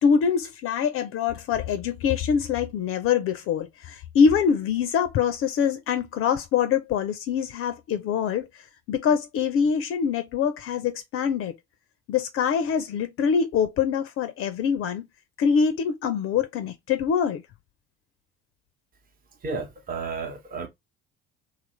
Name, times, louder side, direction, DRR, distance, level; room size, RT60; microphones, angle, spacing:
voice 1, 0.0-11.5 12.1-15.0 15.4-17.4, left 7 dB, 45° left, 0.5 m, -24 dB
voice 2, 19.4-20.7, right 4 dB, 30° right, 0.9 m, -32 dB
2.9 x 2.4 x 3.0 m
hypercardioid pair, 60°, 30 cm